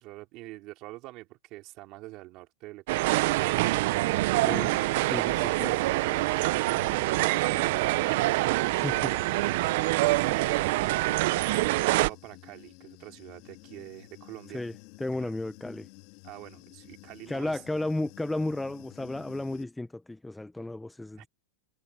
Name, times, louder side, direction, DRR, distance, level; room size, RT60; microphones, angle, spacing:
voice 1, 0.0-3.6 4.0-5.7 6.4-9.3 10.2-11.2 11.7-14.6 15.1-15.3 16.2-17.6 21.2-21.3, right 19 dB, 35° right, 3.7 m, -46 dB
sound 1, 2.9-12.1, right 19 dB, 50° right, 0.5 m, -25 dB
Human voice / Buzz, 3.9-19.6, left 22 dB, 45° left, 2.7 m, -52 dB
voice 2, 5.0-5.8 8.8-9.1 14.5-15.9 17.3-21.3, left 2 dB, 5° left, 0.6 m, -33 dB
supercardioid pair, 160°, 0 cm